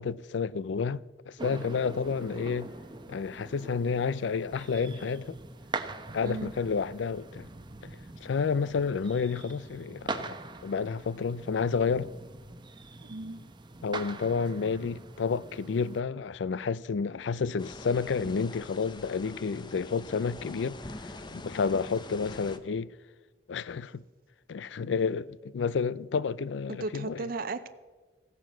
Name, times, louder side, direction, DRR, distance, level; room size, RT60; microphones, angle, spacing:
voice 1, 0.0-2.7 3.1-5.4 6.1-7.5 8.2-10.4 10.6-12.1 13.8-21.1 21.4-22.9 23.5-24.0 24.5-27.3, left 5 dB, 85° left, 0.4 m, -30 dB
sound 1, 1.4-16.0, right 3 dB, 25° right, 0.9 m, -43 dB
voice 2, 6.2-6.5 13.0-13.5 26.7-27.7, right 3 dB, 55° right, 0.6 m, -35 dB
sound 2, 17.6-22.6, left 2 dB, 25° left, 0.8 m, -44 dB
15.5 x 9.3 x 7.6 m
head